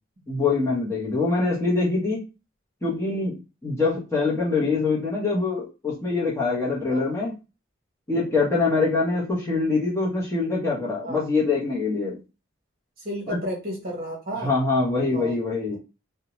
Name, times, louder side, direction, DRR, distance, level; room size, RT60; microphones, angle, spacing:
voice 1, 0.3-2.2 2.8-3.3 3.6-7.3 8.1-12.2 13.3-13.4 14.4-15.8, left 3 dB, 15° left, -5 dB, 0.8 m, -24 dB
voice 2, 13.0-14.5 15.1-15.4, equal, 45° right, -1 dB, 1.0 m, -32 dB
2.7 x 2.1 x 2.9 m, 0.29 s
head